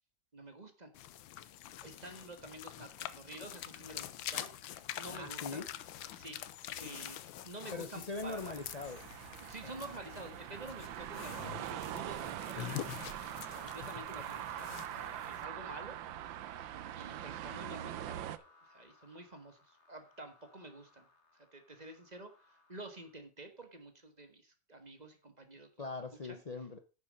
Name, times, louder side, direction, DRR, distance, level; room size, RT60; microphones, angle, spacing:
voice 1, 0.3-0.9 1.8-4.5 5.0-5.6 6.1-6.4 6.8-7.2 7.4-8.6 9.4-12.8 13.6-16.0 16.9-21.1 21.5-25.7 26.2-26.4, right 2 dB, 25° right, 1.4 m, -49 dB
sound 1, 0.9-15.5, left 12 dB, 90° left, 1.5 m, -46 dB
voice 2, 5.1-5.7 7.7-9.0 9.6-9.9 25.8-26.8, left 3 dB, 75° left, 0.3 m, -42 dB
sound 2, 8.2-18.4, right 12 dB, 85° right, 1.5 m, -43 dB
sound 3, 11.7-23.1, left 3 dB, 35° left, 1.9 m, -65 dB
9.9 x 7.1 x 5.3 m
omnidirectional pair, 2.1 m